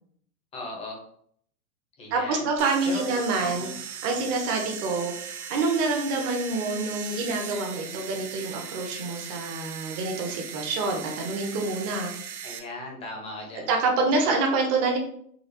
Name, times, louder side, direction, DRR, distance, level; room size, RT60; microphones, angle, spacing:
voice 1, 0.5-1.0 2.0-2.5 2.8-3.7 12.4-13.7, left 2 dB, 15° left, -1 dB, 0.6 m, -38 dB
voice 2, 2.1-12.1 13.7-15.0, right 3 dB, 30° right, 2 dB, 0.8 m, -27 dB
sound 1, 2.6-12.6, right 8 dB, 70° right, 0.6 m, -38 dB
4.0 x 2.4 x 2.5 m, 0.64 s
hypercardioid pair, 130°, 46 cm